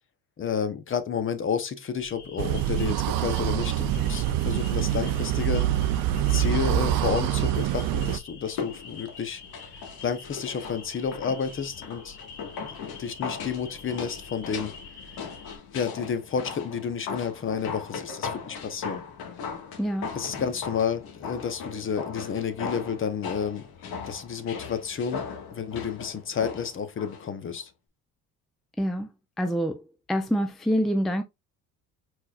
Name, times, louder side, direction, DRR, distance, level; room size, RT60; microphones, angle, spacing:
voice 1, 0.4-5.6 6.3-9.7 10.0-12.2 12.6-14.8 15.7-19.0 20.1-23.6 24.1-25.2 25.5-27.7, left 7 dB, 35° left, 0.8 m, -31 dB
sound 1, 2.0-15.6, left 4 dB, 55° left, 2.8 m, -46 dB
sound 2, 2.4-8.2, right 12 dB, 65° right, 0.5 m, -25 dB
sound 3, 8.4-27.3 27.6-27.7, left 5 dB, 70° left, 1.7 m, -38 dB
voice 2, 19.8-20.1 28.8-29.1 29.4-29.8 30.1-31.2, equal, ahead, 0.4 m, -26 dB
4.5 x 4.3 x 2.4 m
cardioid pair, 115°, 38 cm